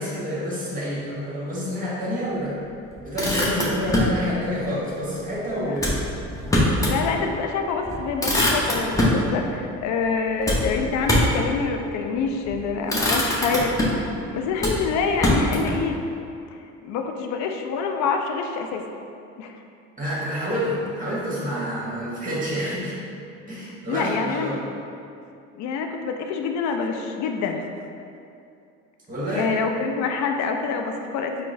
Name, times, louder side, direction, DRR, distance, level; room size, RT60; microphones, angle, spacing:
voice 1, 0.0-2.6 3.0-5.9 20.0-23.0 23.5-24.6 29.1-29.5, equal, 20° right, -7 dB, 1.3 m, -28 dB
Motor vehicle (road), 2.9-4.2 5.8-7.0 7.4-7.5 7.8-9.2 10.4-11.4 12.3-12.5 12.9-14.1 14.6-15.8, left 1 dB, 10° left, 0.7 m, -23 dB
voice 2, 6.8-14.0 14.3-16.0 16.8-18.8 19.4-19.6 23.9-24.5 25.5-27.7 29.3-31.4, left 5 dB, 50° left, 4 dB, 0.4 m, -26 dB
4.4 x 2.1 x 2.6 m, 2.5 s
hypercardioid pair, 65°, 39 cm